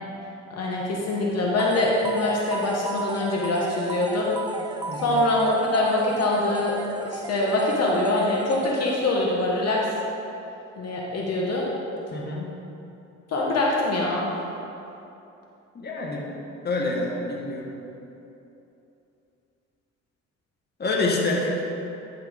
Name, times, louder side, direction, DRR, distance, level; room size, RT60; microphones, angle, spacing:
voice 1, 0.6-4.3 5.0-6.8 7.0-9.8 10.8-11.7 13.3-14.3, left 2 dB, 55° left, -3 dB, 1.2 m, -24 dB
sound 1, 1.6-9.3, right 3 dB, 15° right, 0.3 m, -35 dB
voice 2, 4.9-5.2 12.1-12.5 15.7-16.3 16.6-17.8 20.8-21.6, left 2 dB, 35° left, -2 dB, 1.3 m, -27 dB
10.0 x 5.6 x 3.6 m, 2.9 s
cardioid pair, 90°, 30 cm